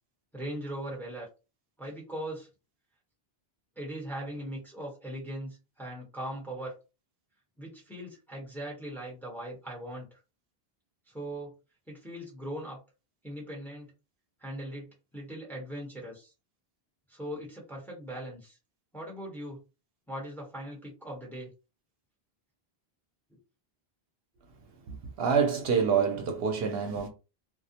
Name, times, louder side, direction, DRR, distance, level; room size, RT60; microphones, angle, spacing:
voice 1, 0.3-1.3 1.8-2.5 3.8-6.7 7.6-10.1 11.1-11.5 11.9-12.8 13.2-13.9 14.4-16.3 17.1-18.6 18.9-19.6 20.1-21.5, right 1 dB, ahead, 0.9 m, -39 dB
voice 2, 24.9-27.1, right 6 dB, 75° right, 0.8 m, -27 dB
2.4 x 2.0 x 2.7 m
omnidirectional pair, 1.0 m